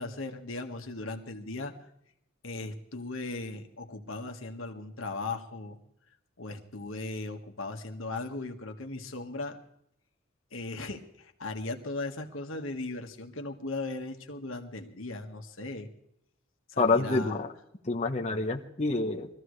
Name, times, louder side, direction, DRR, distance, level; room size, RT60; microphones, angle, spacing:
voice 1, 0.0-1.9 2.4-5.8 6.4-9.6 10.5-15.9 16.7-17.4, left 2 dB, 80° left, 4 dB, 1.7 m, -37 dB
voice 2, 16.8-17.5 17.8-19.3, left 3 dB, 35° left, 1 dB, 1.0 m, -27 dB
23.0 x 14.5 x 3.2 m, 0.75 s
head